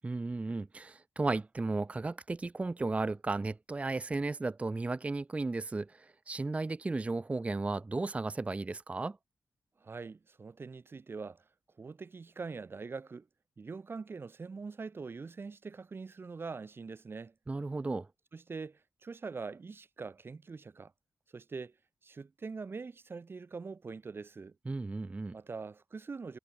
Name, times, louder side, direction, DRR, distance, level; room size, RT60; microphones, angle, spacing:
voice 1, 0.0-9.2 17.5-18.1 24.7-25.3, right 3 dB, 20° right, 0.6 m, -34 dB
voice 2, 9.8-11.4 11.8-13.3 13.6-17.3 18.3-20.9 21.3-21.7 22.0-24.5 25.3-26.4, right 4 dB, 35° right, 1.5 m, -43 dB
wide cardioid pair, 155°, 7 cm